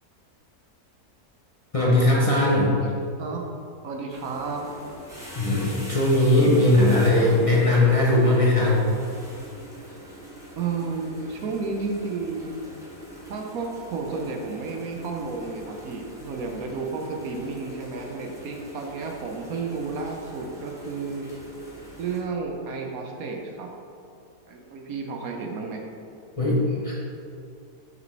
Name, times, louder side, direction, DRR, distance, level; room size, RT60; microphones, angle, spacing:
voice 1, 1.7-2.8 5.3-8.8 26.4-26.9, left 1 dB, 30° left, -5 dB, 0.8 m, -19 dB
voice 2, 3.8-4.7 10.6-12.5 13.3-21.3 22.0-23.7 24.5-25.8, right 4 dB, 70° right, 2 dB, 1.2 m, -32 dB
sound 1, 4.1-22.2, right 1 dB, ahead, 1.2 m, -43 dB
6.2 x 5.2 x 4.5 m, 2.5 s
omnidirectional pair, 1.6 m